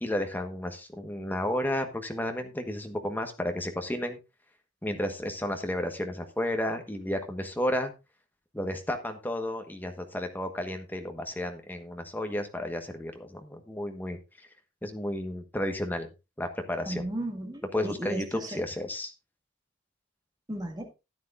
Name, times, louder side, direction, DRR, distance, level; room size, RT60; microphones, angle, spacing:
voice 1, 0.0-4.2 4.8-7.9 8.5-14.2 14.8-16.1 16.4-17.0 17.7-19.1, left 1 dB, 10° left, 5 dB, 1.3 m, -32 dB
voice 2, 16.9-18.6 20.5-20.9, right 1 dB, 20° right, 2 dB, 2.0 m, -35 dB
13.5 x 9.6 x 2.5 m, 0.26 s
head